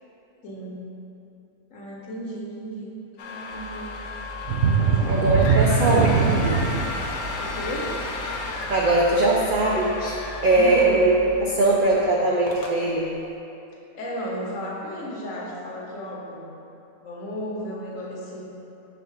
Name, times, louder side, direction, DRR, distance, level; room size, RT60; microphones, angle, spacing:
voice 1, 0.4-0.9 1.7-4.0 4.8-5.8 7.4-8.1 10.5-11.2 13.9-16.5 17.0-18.4, equal, 65° left, -3 dB, 1.3 m, -34 dB
sound 1, 3.2-11.4 11.8-12.0 12.5-12.8, left 3 dB, 90° left, 1.1 m, -34 dB
sound 2, 4.4-9.9 10.3-10.5 11.0-11.1, right 5 dB, 65° right, 0.8 m, -23 dB
voice 2, 5.1-6.2 6.4-6.6 8.7-10.1 10.4-11.1 11.4-13.1, right 2 dB, 85° right, -3 dB, 0.4 m, -21 dB
4.7 x 3.6 x 5.6 m, 2.8 s
omnidirectional pair, 1.5 m